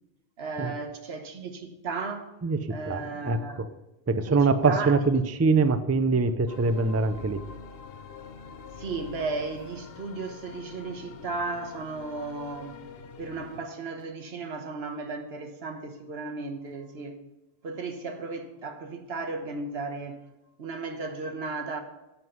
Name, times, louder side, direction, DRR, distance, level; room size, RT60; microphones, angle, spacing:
voice 1, 0.4-2.3 2.7-3.6 4.3-5.0 8.8-12.8 13.2-17.2 17.6-20.2 20.6-21.8, right 3 dB, 80° right, 1.3 m, -35 dB
voice 2, 2.4-3.5 4.1-7.4, right 4 dB, 25° right, 0.4 m, -24 dB
sound 1, 6.5-13.6, left 6 dB, 70° left, 0.9 m, -45 dB
9.5 x 8.1 x 5.5 m
omnidirectional pair, 1.0 m